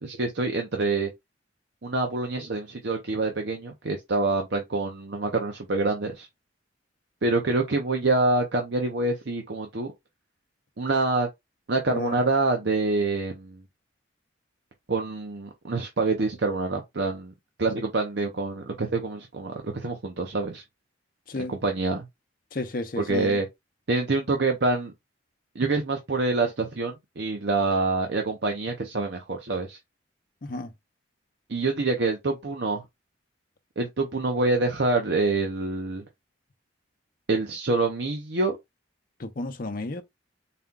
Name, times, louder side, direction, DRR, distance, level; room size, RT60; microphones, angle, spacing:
voice 1, 0.0-1.1 1.8-6.3 7.2-9.9 10.8-11.3 11.7-13.6 14.9-17.3 17.6-20.6 21.5-22.1 23.0-23.5 23.9-24.9 25.5-29.8 31.5-32.8 33.8-36.0 37.3-38.6, right 3 dB, 60° right, 0.7 m, -26 dB
voice 2, 11.9-12.2 21.3-21.5 22.5-23.4 30.4-30.7 39.2-40.0, left 2 dB, 45° left, 0.7 m, -32 dB
4.2 x 2.2 x 3.7 m
head